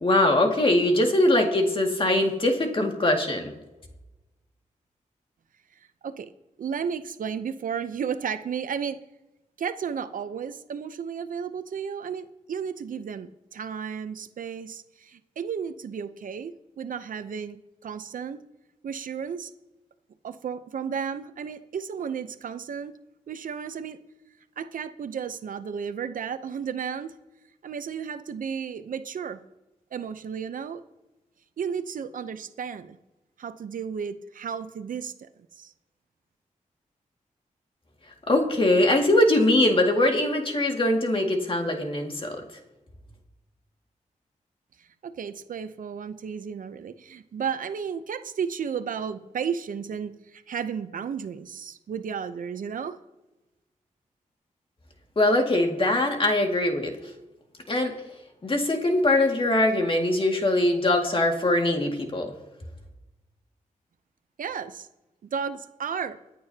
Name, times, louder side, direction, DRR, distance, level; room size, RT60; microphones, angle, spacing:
voice 1, 0.0-3.5 38.3-42.4 55.2-56.9 57.7-57.9 58.4-62.3, left 1 dB, 40° left, 2 dB, 2.1 m, -22 dB
voice 2, 6.6-9.0 9.6-18.4 18.8-19.5 20.2-22.9 23.3-24.0 24.6-27.1 27.6-29.4 29.9-30.8 31.6-33.0 33.4-35.1 35.6-35.7 45.2-53.0 64.4-64.9 65.2-66.2, right 7 dB, 80° right, 11 dB, 0.7 m, -33 dB
24.5 x 8.6 x 2.8 m, 1.0 s
wide cardioid pair, 85°, 14 cm